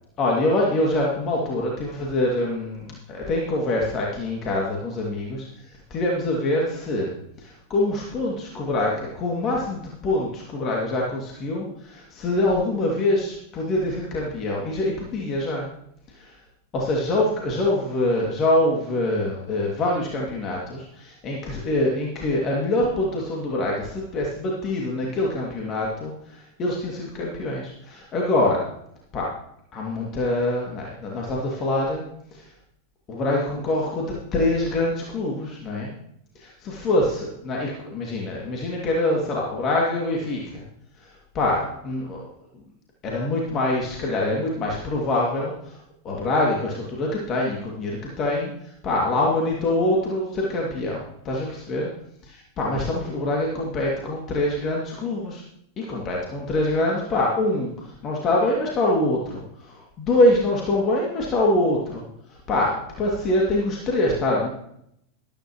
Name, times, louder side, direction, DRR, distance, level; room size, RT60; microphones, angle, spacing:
voice 1, 0.2-5.4 5.9-15.7 16.2-16.3 16.7-28.6 29.1-29.3 29.7-32.0 32.3-32.5 33.1-35.9 36.4-40.6 41.3-42.2 43.0-45.8 46.0-48.5 48.8-51.9 52.2-55.4 55.8-62.0 62.3-64.5, left 1 dB, 30° left, -2 dB, 2.4 m, -24 dB
13.5 x 12.5 x 3.1 m, 0.72 s
figure-of-eight pair, 90°, 0 cm